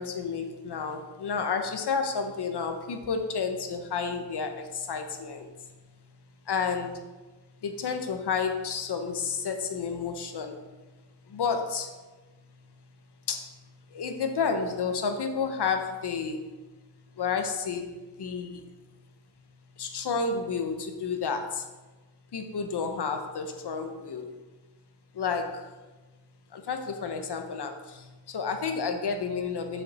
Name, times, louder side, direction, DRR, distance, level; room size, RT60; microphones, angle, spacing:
voice 1, 0.0-5.5 6.5-6.9 7.6-10.6 11.3-11.9 13.3-13.5 13.9-16.4 17.2-17.9 18.2-18.6 19.8-21.6 22.3-24.2 25.2-25.6 26.5-27.7 28.3-29.8, left 5 dB, 60° left, 6 dB, 0.9 m, -30 dB
6.4 x 5.9 x 4.2 m, 1.2 s
wide cardioid pair, 130°, 46 cm